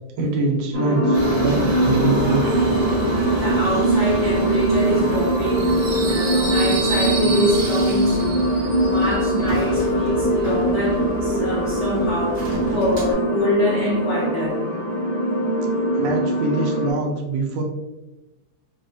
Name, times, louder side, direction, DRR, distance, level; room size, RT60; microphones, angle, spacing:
voice 1, 0.2-2.5 15.7-17.6, right 3 dB, 80° right, 0 dB, 1.3 m, -24 dB
sound 1, 0.7-16.9, right 1 dB, 5° left, 0.8 m, -22 dB
Subway metro underground, 1.1-13.1, equal, 50° right, 1.0 m, -29 dB
voice 2, 3.3-14.6, left 1 dB, 75° left, -4 dB, 0.6 m, -25 dB
4.2 x 2.2 x 2.6 m, 1.0 s
omnidirectional pair, 2.0 m